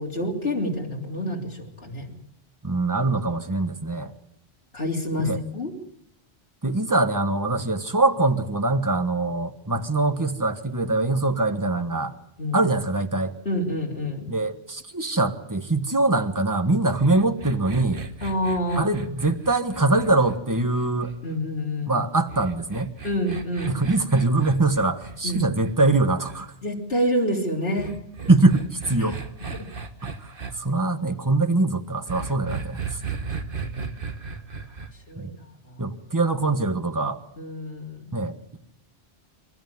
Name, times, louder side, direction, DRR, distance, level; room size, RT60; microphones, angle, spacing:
voice 1, 0.0-2.1 4.7-5.7 12.4-12.7 13.5-14.3 18.2-18.9 21.2-22.0 23.0-23.8 25.2-25.4 26.6-28.0 29.0-29.1 29.5-29.7 35.1-35.3 35.7-35.8 37.4-38.0, equal, 65° left, 0 dB, 3.9 m, -27 dB
voice 2, 2.6-4.1 5.2-5.4 6.6-12.1 12.5-13.3 14.3-18.0 18.7-21.1 21.9-22.9 23.6-26.5 28.3-29.2 30.6-32.8 35.2-35.3 35.8-37.2 38.1-38.6, right 2 dB, 20° right, 8 dB, 1.4 m, -23 dB
sound 1, 16.9-21.4 22.3-26.4 27.8-30.5 32.1-34.9, right 5 dB, 55° right, 1.7 m, -36 dB
27.5 x 13.5 x 9.5 m, 0.75 s
omnidirectional pair, 1.1 m